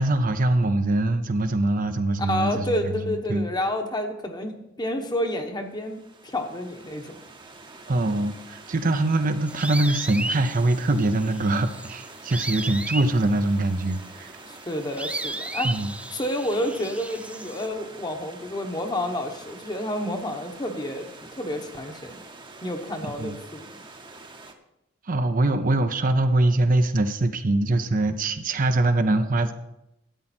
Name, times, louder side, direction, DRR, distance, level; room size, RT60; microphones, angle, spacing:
voice 1, 0.0-3.5 7.9-14.3 15.6-15.9 23.2-23.4 25.1-29.5, right 2 dB, 45° right, 8 dB, 0.7 m, -23 dB
voice 2, 2.2-7.1 14.5-15.7 16.1-21.1 21.4-22.2 22.6-23.7, left 1 dB, 20° left, 5 dB, 1.1 m, -29 dB
Stream / Liquid, 5.6-24.5, right 3 dB, 25° right, 1.0 m, -46 dB
sound 1, 9.5-17.7, right 2 dB, 5° right, 0.6 m, -35 dB
12.5 x 8.6 x 4.3 m, 0.87 s
head